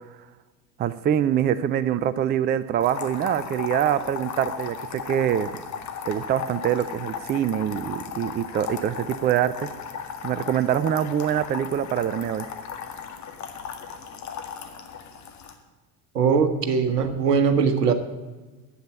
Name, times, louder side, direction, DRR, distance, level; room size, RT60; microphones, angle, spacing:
voice 1, 0.8-5.5 6.1-9.7 10.2-12.5, right 10 dB, 20° right, 16 dB, 0.5 m, -24 dB
sound 1, 2.8-15.5, left 6 dB, 35° left, 2.0 m, -36 dB
voice 2, 16.1-17.9, right 6 dB, 75° right, 9 dB, 1.5 m, -21 dB
11.5 x 8.6 x 8.3 m, 1.2 s
figure-of-eight pair, 70°, 48 cm